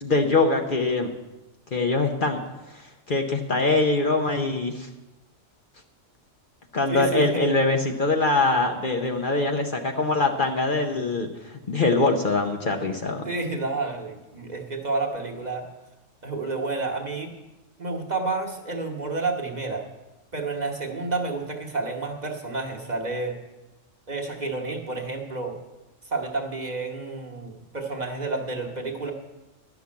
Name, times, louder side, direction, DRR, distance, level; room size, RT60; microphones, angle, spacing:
voice 1, 0.0-1.1 1.7-2.4 3.1-4.9 6.7-11.3 11.7-13.2, left 3 dB, 50° left, 3 dB, 0.9 m, -23 dB
voice 2, 6.9-7.5 13.2-15.7 16.2-17.3 17.8-19.8 20.3-23.4 24.1-25.6 26.0-29.1, right 3 dB, 35° right, 1 dB, 1.2 m, -30 dB
11.5 x 5.9 x 8.3 m, 1.0 s
omnidirectional pair, 1.3 m